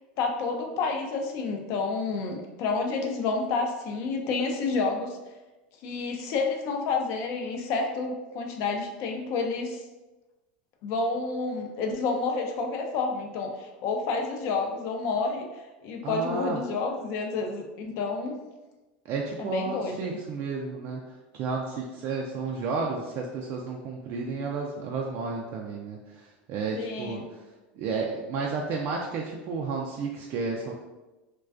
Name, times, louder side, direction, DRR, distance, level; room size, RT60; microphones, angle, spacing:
voice 1, 0.2-5.2 5.8-9.8 10.8-15.5 15.8-18.4 19.4-20.2 26.7-27.3, left 4 dB, 55° left, 3 dB, 0.4 m, -29 dB
voice 2, 16.0-16.6 19.1-21.0 21.3-27.2 27.8-30.7, right 4 dB, 50° right, -1 dB, 0.3 m, -32 dB
2.3 x 2.2 x 2.4 m, 1.1 s
supercardioid pair, 110°, 6 cm